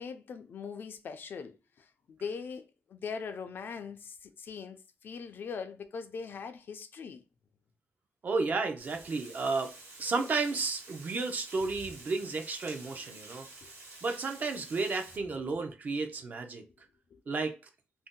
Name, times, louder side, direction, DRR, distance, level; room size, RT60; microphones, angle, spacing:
voice 1, 0.0-7.2 13.6-13.7 17.1-17.2, left 5 dB, 55° left, 0.4 m, -41 dB
voice 2, 8.2-9.7 10.0-13.5 14.0-16.6 17.3-17.6, right 4 dB, 45° right, 0.5 m, -32 dB
Water, 8.8-15.2, right 2 dB, 75° right, 1.3 m, -50 dB
2.6 x 2.1 x 3.6 m
wide cardioid pair, 155°, 4 cm